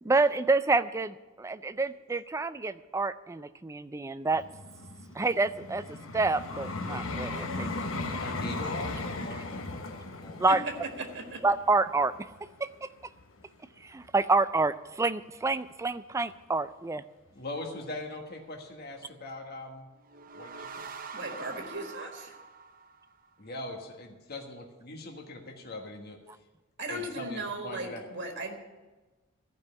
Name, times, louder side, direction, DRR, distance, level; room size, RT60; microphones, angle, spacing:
voice 1, 0.0-4.4 5.1-8.2 10.4-10.6 11.4-12.3 12.6-12.9 13.8-17.0, right 3 dB, 15° right, 14 dB, 0.3 m, -28 dB
Vehicle, 4.3-13.4 14.0-14.2, left 2 dB, 70° left, 1.1 m, -37 dB
voice 2, 8.1-10.4 17.3-19.9 20.4-20.9 23.4-26.2 26.9-28.0, left 2 dB, 50° left, 2 dB, 1.4 m, -41 dB
voice 3, 11.0-11.4 21.1-22.3 26.8-28.6, right 2 dB, 60° right, 2 dB, 1.5 m, -37 dB
sound 1, 20.0-23.5, right 4 dB, 45° right, 0.7 m, -45 dB
15.0 x 5.4 x 9.5 m, 1.2 s
head